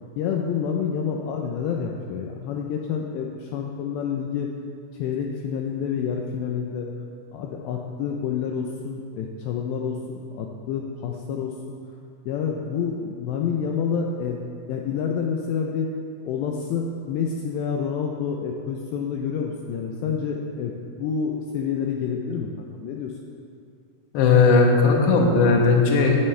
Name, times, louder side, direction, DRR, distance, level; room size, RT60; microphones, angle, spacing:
voice 1, 0.2-4.5 5.0-6.9 7.3-11.5 12.3-15.9 16.3-23.1, left 6 dB, 85° left, 1 dB, 2.4 m, -28 dB
voice 2, 24.1-26.2, left 4 dB, 70° left, 1 dB, 3.1 m, -17 dB
17.0 x 11.0 x 3.3 m, 2.6 s
omnidirectional pair, 5.8 m